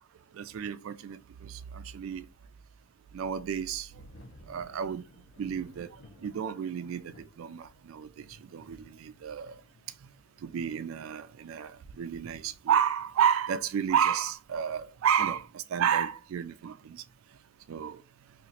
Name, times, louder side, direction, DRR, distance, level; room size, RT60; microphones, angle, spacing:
voice 1, 0.3-2.3 3.1-4.0 4.5-5.0 5.4-9.6 10.4-17.0 17.7-18.0, right 8 dB, 90° right, 0.3 m, -31 dB
Thunder / Rain, 3.9-13.7, left 1 dB, 65° left, 0.8 m, -57 dB
2.9 x 2.4 x 4.0 m
head